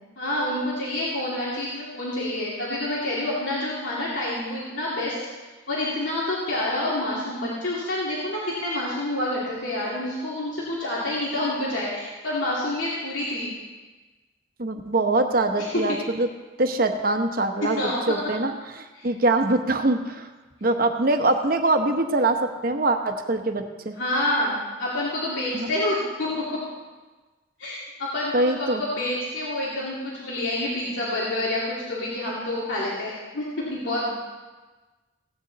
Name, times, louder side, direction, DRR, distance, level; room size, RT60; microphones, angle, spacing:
voice 1, 0.2-5.2 5.7-13.5 15.6-16.0 17.6-18.2 18.9-19.1 24.0-26.6 27.6-34.2, left 1 dB, 80° left, -7 dB, 2.7 m, -28 dB
voice 2, 14.6-16.3 16.6-20.3 20.6-23.9 25.5-25.7 28.3-28.8, right 2 dB, 50° right, 6 dB, 0.9 m, -23 dB
16.5 x 9.3 x 4.1 m, 1.2 s
head